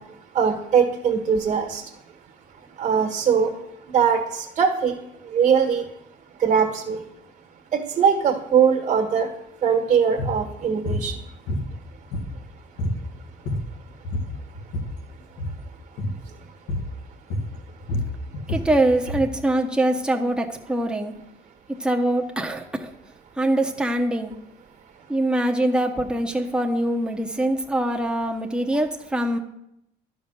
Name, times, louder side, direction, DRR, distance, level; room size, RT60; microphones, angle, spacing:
voice 1, 0.3-1.8 2.8-3.5 3.9-4.9 5.3-5.8 6.4-7.0 7.7-9.3 9.6-11.1, right 7 dB, 45° right, 3 dB, 1.5 m, -21 dB
sound 1, 10.2-10.4 10.8-11.1 11.5-12.5 12.8-13.0 13.3-13.8 14.0-15.0 15.3-15.6 16.0-16.2 16.7-16.9 17.3-19.3, left 1 dB, 85° left, 2.0 m, -28 dB
voice 2, 18.5-21.1 21.8-22.9 23.4-24.3 25.1-29.4, right 1 dB, 5° right, 2 dB, 1.0 m, -23 dB
11.5 x 5.4 x 6.4 m, 0.82 s
cardioid pair, 110°, 17 cm